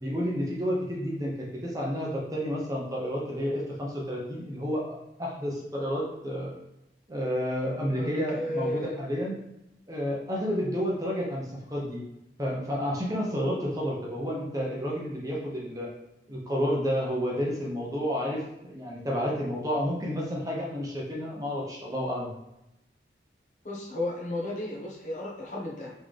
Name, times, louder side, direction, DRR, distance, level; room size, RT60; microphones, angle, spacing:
voice 1, 0.0-6.5 7.1-9.3 9.9-12.0 12.4-15.9 16.3-22.3, equal, 20° right, -3 dB, 0.8 m, -30 dB
voice 2, 7.9-9.0 23.6-25.9, left 1 dB, 45° left, -4 dB, 1.1 m, -33 dB
4.3 x 3.6 x 3.3 m, 0.88 s
head